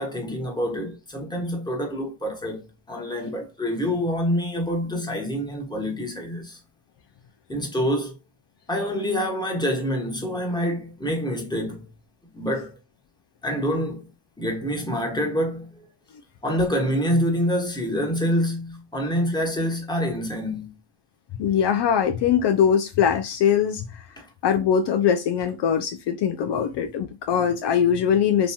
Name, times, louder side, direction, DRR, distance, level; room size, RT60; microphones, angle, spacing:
voice 1, 0.0-6.6 7.5-8.1 8.7-11.9 12.3-12.7 13.4-14.1 14.4-15.9 16.4-20.7 24.2-24.3, equal, 10° left, 1.1 m, -26 dB
voice 2, 21.4-24.0 24.4-28.5, left 8 dB, 60° left, 0.5 m, -22 dB
3.0 x 2.6 x 2.2 m
supercardioid pair, 55°, 47 cm